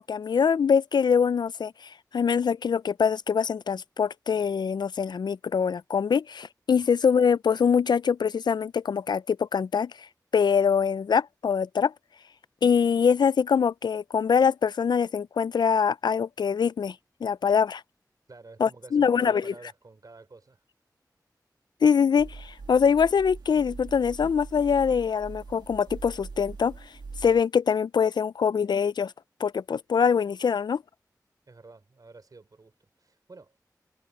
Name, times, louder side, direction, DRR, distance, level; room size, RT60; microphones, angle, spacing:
voice 1, 0.0-1.7 2.1-9.9 10.3-11.9 12.6-17.0 17.2-17.8 18.6-19.4 21.8-26.7 27.2-29.1 29.4-30.8, left 6 dB, 90° left, 0.4 m, -23 dB
voice 2, 18.3-20.6 31.5-33.6, right 3 dB, 60° right, 3.4 m, -49 dB
sound 1, 22.2-27.4, right 4 dB, 80° right, 1.6 m, -42 dB
wide cardioid pair, 55°, 7 cm